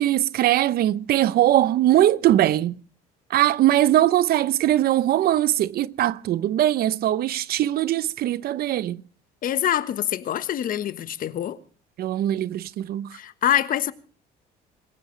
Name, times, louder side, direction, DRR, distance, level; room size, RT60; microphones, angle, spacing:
voice 1, 0.0-2.8 3.3-9.0 12.0-13.1, right 13 dB, 65° right, 0.8 m, -21 dB
voice 2, 9.4-11.6 13.1-13.9, left 11 dB, 55° left, 1.3 m, -25 dB
26.0 x 16.0 x 3.3 m
cardioid pair, 110°, 17 cm